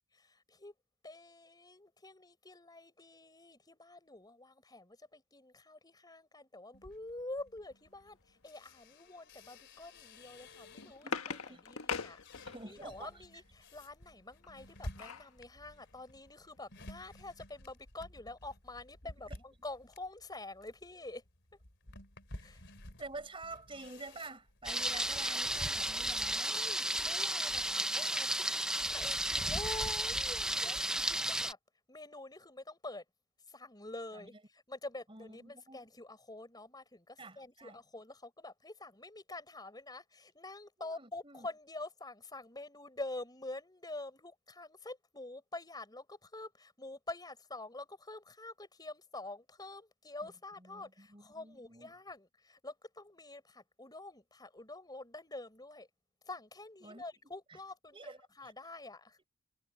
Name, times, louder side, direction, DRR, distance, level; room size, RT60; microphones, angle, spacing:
voice 1, 0.1-0.7 1.0-21.2 22.4-22.6 26.4-31.6 31.9-33.0 33.5-55.9 56.2-59.2, left 2 dB, 20° left, 4.9 m, -47 dB
sound 1, 6.7-11.2 11.7-26.4, left 1 dB, 55° left, 3.6 m, -53 dB
sound 2, 10.4-12.9 14.4-15.3 15.8-15.9 16.2-16.4, left 5 dB, 75° left, 1.4 m, -41 dB
voice 2, 11.0-11.6 12.4-13.1 19.3-19.4 23.0-26.6 31.0-31.2 34.1-34.3 35.1-35.8 37.2-37.8 40.8-41.5 50.6-51.9 56.8-57.0 57.5-57.6 57.9-58.2 58.4-58.5, right 3 dB, 25° right, 5.8 m, -49 dB
Thunder, 24.6-31.5, right 1 dB, 5° right, 0.8 m, -33 dB
head